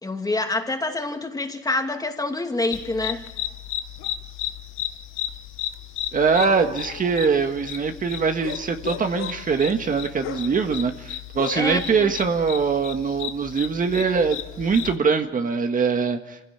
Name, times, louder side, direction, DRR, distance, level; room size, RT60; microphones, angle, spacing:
voice 1, 0.0-3.2 11.5-12.1, left 2 dB, 20° left, 2.6 m, -26 dB
sound 1, 2.7-15.0, left 12 dB, 90° left, 1.1 m, -34 dB
voice 2, 6.1-16.4, right 5 dB, 45° right, 1.6 m, -23 dB
26.5 x 16.5 x 8.8 m
cardioid pair, 90°, 20 cm